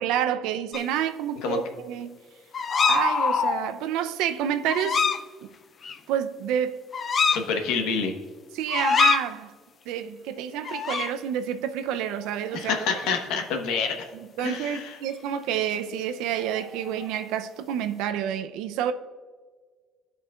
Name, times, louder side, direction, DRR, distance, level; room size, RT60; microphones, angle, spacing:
voice 1, 0.0-2.2 2.9-5.0 5.4-5.5 6.1-6.8 8.5-9.5 9.9-12.7 14.4-18.9, right 9 dB, 85° right, 0.5 m, -28 dB
sound 1, 0.7-0.8 2.5-3.7 4.7-5.2 5.8-6.0 6.9-7.4 8.7-9.2 10.6-11.1 12.3-12.5 12.8-13.1 16.5-17.2, left 5 dB, 30° left, 0.3 m, -24 dB
voice 2, 7.3-8.1 12.5-14.1 14.4-15.0, left 5 dB, 80° left, 1.1 m, -27 dB
14.5 x 5.4 x 2.3 m
cardioid pair, 160°, 0 cm